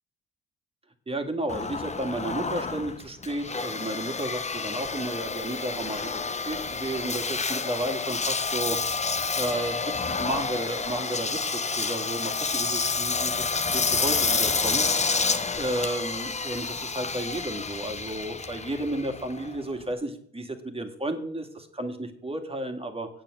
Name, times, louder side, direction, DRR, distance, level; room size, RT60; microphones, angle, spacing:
voice 1, 1.1-6.2 6.5-9.0 9.4-15.2 15.5-23.1, right 1 dB, 20° right, 5 dB, 2.0 m, -33 dB
Engine, 1.5-19.9, left 4 dB, 25° left, 0.9 m, -29 dB
8.9 x 7.6 x 7.7 m, 0.65 s
cardioid pair, 90°, 30 cm